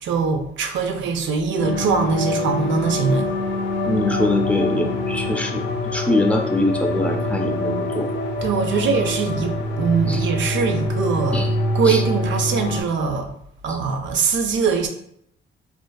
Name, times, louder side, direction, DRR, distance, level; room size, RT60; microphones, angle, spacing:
voice 1, 0.0-3.3 8.4-11.5 11.7-13.3 13.6-14.9, right 5 dB, 70° right, 5 dB, 0.5 m, -22 dB
sound 1, 1.6-12.8, left 1 dB, 65° left, 0.6 m, -25 dB
voice 2, 3.9-8.1 10.1-10.2 11.3-11.5 11.8-12.0 13.7-13.8, left 1 dB, 5° left, 2 dB, 0.4 m, -23 dB
2.6 x 2.2 x 2.2 m, 0.71 s
cardioid pair, 90°, 20 cm